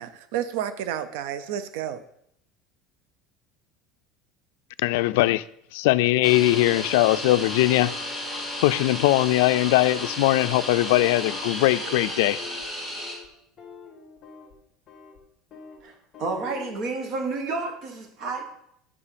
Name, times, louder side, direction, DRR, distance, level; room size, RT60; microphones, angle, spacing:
voice 1, 0.0-2.0, right 10 dB, 80° right, 0.5 m, -31 dB
voice 2, 4.8-5.4 5.7-7.9 8.6-12.4, left 17 dB, 85° left, 0.3 m, -21 dB
sound 1, 6.2-13.1, left 1 dB, 15° right, 2.3 m, -33 dB
sound 2, 11.7-12.0 12.3-12.7 13.0-13.3 13.6-14.5 14.9-15.2 15.5-15.8 16.1-16.8, left 5 dB, 25° left, 1.7 m, -46 dB
voice 3, 15.8-18.4, right 3 dB, 40° right, 1.5 m, -30 dB
9.8 x 4.8 x 5.1 m
cardioid pair, 170°, 0 cm